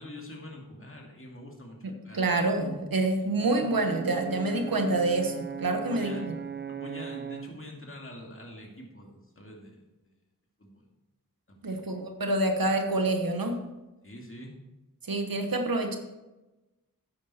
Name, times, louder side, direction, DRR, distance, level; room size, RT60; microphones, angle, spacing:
voice 1, 0.0-2.3 5.9-6.3 6.7-10.1 10.6-10.8 11.5-11.8 14.0-14.5, left 1 dB, 40° left, 0 dB, 2.3 m, -45 dB
voice 2, 1.8-6.3 11.6-13.5 15.1-16.0, right 2 dB, 80° right, 5 dB, 1.2 m, -27 dB
Brass instrument, 3.4-7.6, right 7 dB, 35° right, 0.4 m, -38 dB
9.5 x 8.4 x 4.4 m, 1.1 s
wide cardioid pair, 55°, 34 cm